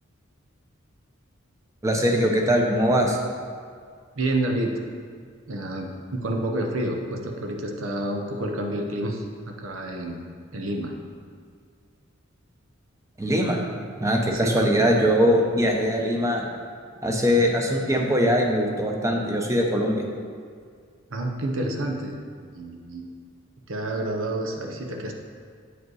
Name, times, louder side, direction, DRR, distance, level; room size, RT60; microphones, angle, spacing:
voice 1, 1.8-3.2 13.2-13.6 14.0-16.4 17.0-20.0, equal, 15° right, 1 dB, 0.8 m, -21 dB
voice 2, 4.2-4.8 5.5-10.2 10.5-10.9 14.3-14.7 21.1-23.1 23.7-25.1, right 1 dB, 85° right, 2 dB, 0.9 m, -29 dB
8.1 x 5.0 x 4.7 m, 2.1 s
head